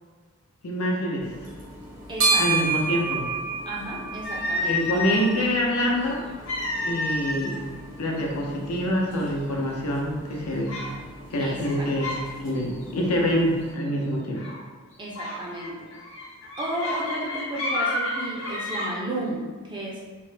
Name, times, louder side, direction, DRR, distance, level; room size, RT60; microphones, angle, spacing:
voice 1, 0.6-1.3 2.3-3.3 4.7-6.2 6.8-7.6 8.0-10.7 11.3-12.1 12.4-14.6, equal, 85° left, -1 dB, 0.6 m, -26 dB
sound 1, 1.2-13.7, right 4 dB, 65° right, 0.9 m, -32 dB
voice 2, 2.1-2.4 3.7-4.8 11.4-11.9 13.2-13.3 15.0-15.9 16.6-20.0, right 1 dB, 20° right, -3 dB, 0.4 m, -33 dB
sound 2, 4.2-5.4 6.5-7.6 7.9-8.2 8.9-9.0 9.5-9.9 10.7-10.9 11.5-12.3 12.6-12.9 14.4-14.6 15.1-18.9, left 2 dB, 55° left, 0.8 m, -30 dB
3.2 x 2.1 x 3.2 m, 1.5 s
head